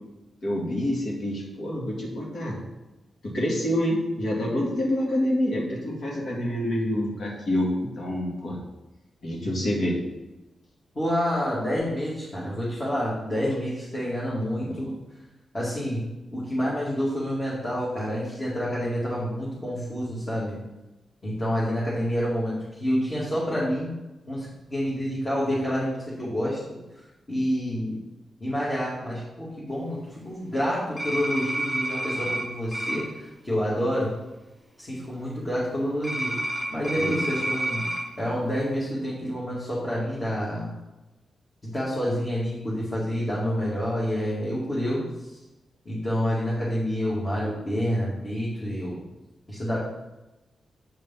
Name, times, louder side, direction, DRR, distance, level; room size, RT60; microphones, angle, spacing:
voice 1, 0.4-2.6 3.2-8.6 9.2-10.0, left 1 dB, 55° left, -2 dB, 2.3 m, -27 dB
voice 2, 10.9-14.9 15.5-20.6 21.2-23.9 24.3-26.6 27.0-27.9 28.4-34.1 34.8-37.9 38.2-40.7 41.6-45.4 45.8-49.0 49.5-49.9, equal, 25° left, -8 dB, 2.3 m, -28 dB
sound 1, 31.0-32.4 32.7-33.0 36.0-38.0, right 1 dB, 5° left, 3.0 m, -29 dB
7.8 x 5.0 x 5.7 m, 1.0 s
wide cardioid pair, 135°, 0 cm